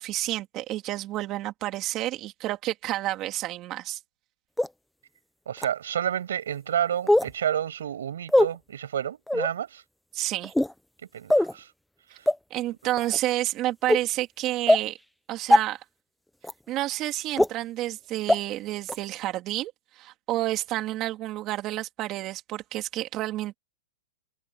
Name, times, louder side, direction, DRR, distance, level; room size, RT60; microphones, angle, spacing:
voice 1, 0.0-4.0 10.1-10.5 12.5-15.0 15.3-15.8 16.7-23.6, right 15 dB, 25° right, 3.4 m, -30 dB
sound 1, 4.6-4.7 5.6-5.7 7.1-7.3 8.3-8.5 9.3-9.5 10.4-10.7 11.3-11.5 12.3-12.4 13.0-13.2 13.9-14.0 14.7-14.8 15.5-15.6 16.4-16.5 17.4-17.5 18.3-18.4 18.9-19.0, left 1 dB, ahead, 0.8 m, -20 dB
voice 2, 5.5-9.8 11.1-11.7 12.1-12.3, right 9 dB, 80° right, 6.9 m, -30 dB
hypercardioid pair, 160°, 0 cm